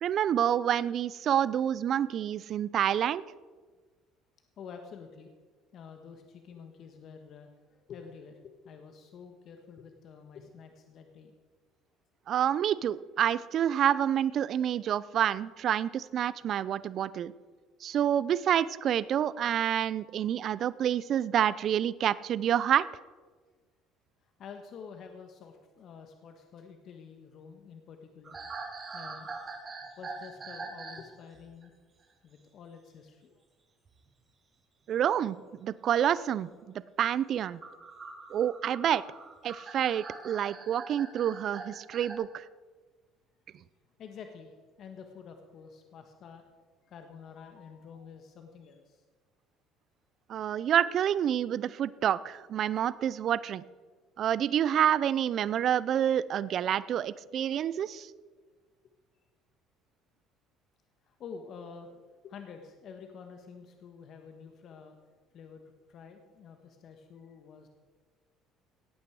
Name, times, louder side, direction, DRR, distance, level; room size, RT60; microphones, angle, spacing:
voice 1, 0.0-3.2 12.3-17.3 17.8-22.8 34.9-35.4 35.6-37.6 38.3-39.0 39.4-42.4 50.3-53.6 54.2-58.1, right 10 dB, 55° right, 18 dB, 0.5 m, -28 dB
voice 2, 4.6-5.3 5.7-11.3 24.2-28.4 28.9-29.3 30.0-31.7 32.2-33.4 44.0-46.4 46.8-49.0 61.0-61.9 62.2-65.0 65.3-67.7, left 6 dB, 55° left, 5 dB, 1.4 m, -48 dB
sound 1, 28.2-31.1 31.4-31.7 33.9-34.1 35.4-35.5 37.4-42.2, right 4 dB, 35° right, 3.0 m, -43 dB
17.5 x 8.8 x 4.8 m, 1.4 s
supercardioid pair, 90°, 0 cm